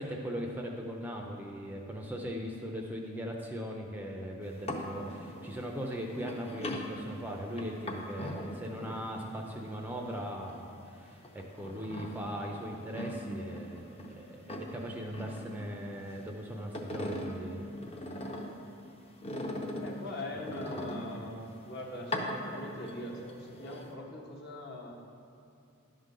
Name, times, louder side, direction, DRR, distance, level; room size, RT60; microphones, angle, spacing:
voice 1, 0.0-17.7 20.7-21.0, equal, 10° right, 0 dB, 0.5 m, -39 dB
sound 1, 4.4-10.9 11.2-14.1 14.4-16.2 16.6-18.7 19.2-21.4 22.0-22.9 23.3-23.9, left 1 dB, 30° left, 0.7 m, -40 dB
voice 2, 19.8-24.9, left 1 dB, 50° left, -1 dB, 1.1 m, -42 dB
11.0 x 3.8 x 6.5 m, 2.6 s
head